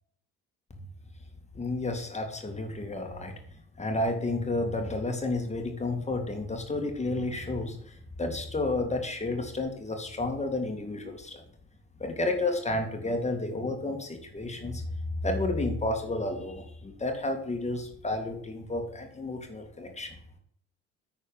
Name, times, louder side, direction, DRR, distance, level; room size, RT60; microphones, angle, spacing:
voice 1, 1.5-3.4 3.8-11.4 12.0-14.8 15.2-20.2, left 2 dB, 20° left, 3 dB, 2.1 m, -31 dB
9.7 x 4.4 x 5.4 m, 0.65 s
hypercardioid pair, 60°, 32 cm